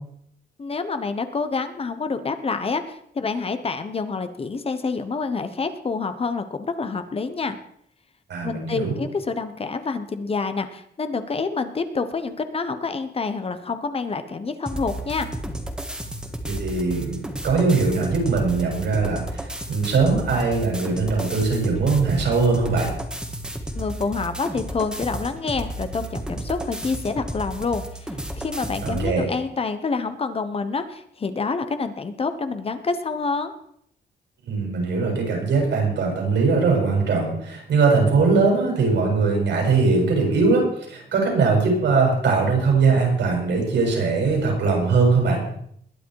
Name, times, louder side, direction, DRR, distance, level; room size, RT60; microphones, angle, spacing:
voice 1, 0.6-7.6 8.4-15.3 23.7-33.5, left 4 dB, 35° left, 10 dB, 1.2 m, -27 dB
voice 2, 8.3-9.0 16.5-22.9 28.8-29.3 34.5-45.4, right 4 dB, 85° right, 0 dB, 7.2 m, -21 dB
sound 1, 14.6-29.1, right 1 dB, 5° right, 1.8 m, -32 dB
21.0 x 10.0 x 4.8 m, 0.69 s
wide cardioid pair, 160°, 18 cm